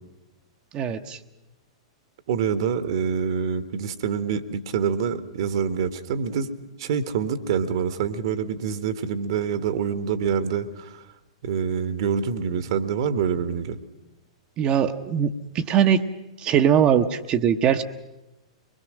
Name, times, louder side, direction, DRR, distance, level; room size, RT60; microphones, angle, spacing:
voice 1, 0.7-1.2 14.6-16.0 16.4-17.8, right 8 dB, 30° right, 7 dB, 1.0 m, -21 dB
voice 2, 2.3-6.5 6.8-11.0 11.4-13.8, right 7 dB, 55° right, 12 dB, 1.4 m, -26 dB
23.5 x 21.0 x 6.5 m, 0.99 s
figure-of-eight pair, 105°, 3 cm